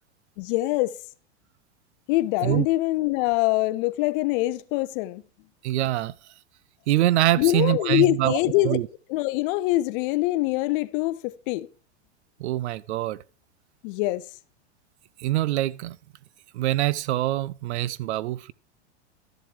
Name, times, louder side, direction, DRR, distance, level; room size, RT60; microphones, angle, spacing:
voice 1, 0.4-0.9 2.1-5.2 7.4-8.8 9.1-11.7 13.8-14.2, left 18 dB, 50° left, 0.7 m, -24 dB
voice 2, 5.6-6.1 6.9-8.9 12.4-13.2 15.2-16.0 16.5-18.5, right 15 dB, 75° right, 0.6 m, -24 dB
12.5 x 7.4 x 3.3 m
hypercardioid pair, 120°, 33 cm